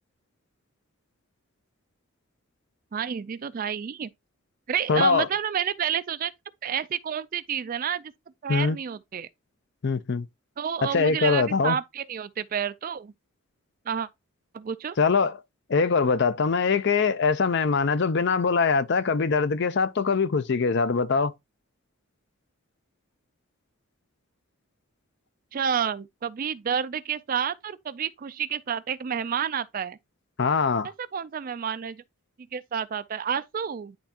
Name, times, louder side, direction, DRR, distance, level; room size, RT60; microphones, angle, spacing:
voice 1, 2.9-4.1 4.7-6.3 6.6-8.1 8.4-9.3 10.6-13.1 13.9-14.1 14.5-15.0 25.5-30.0 31.0-32.0 32.5-34.0, right 8 dB, 40° right, 0.3 m, -30 dB
voice 2, 4.9-5.3 8.5-8.8 9.8-10.3 10.9-11.8 15.0-15.4 15.7-21.3 30.4-30.9, left 5 dB, 50° left, 0.5 m, -23 dB
10.5 x 3.5 x 2.8 m
head